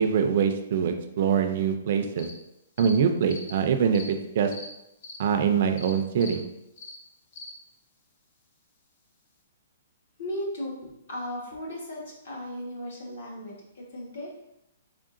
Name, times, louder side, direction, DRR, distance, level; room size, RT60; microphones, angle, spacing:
voice 1, 0.0-2.3 2.8-4.5 5.2-6.4, right 7 dB, 40° right, 6 dB, 0.3 m, -24 dB
sound 1, 2.2-2.3 2.8-2.9 3.3-3.5 3.9-4.1 4.5-4.7 5.0-5.2 5.8-5.9 6.2-6.3 6.8-7.0 7.3-7.5, left 2 dB, 35° left, 0.5 m, -41 dB
voice 2, 10.2-14.3, left 1 dB, 60° left, -2 dB, 1.2 m, -36 dB
3.6 x 3.5 x 2.5 m, 0.85 s
hypercardioid pair, 175°, 0 cm